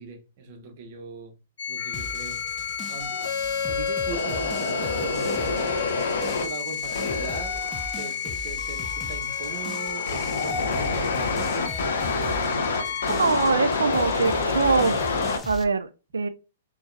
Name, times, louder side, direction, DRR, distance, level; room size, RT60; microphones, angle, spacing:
voice 1, 0.0-1.3 1.7-3.2 3.7-13.4, right 4 dB, 45° right, 1.0 m, -40 dB
sound 1, 1.6-15.4, left 4 dB, 65° left, 0.7 m, -28 dB
sound 2, 1.8-13.2, left 10 dB, 35° left, 0.9 m, -41 dB
sound 3, 1.9-15.6, left 3 dB, 15° left, 0.5 m, -40 dB
voice 2, 13.2-15.0 15.5-15.9 16.1-16.3, right 4 dB, 80° right, 0.4 m, -23 dB
3.8 x 2.9 x 2.6 m
figure-of-eight pair, 110°, 0 cm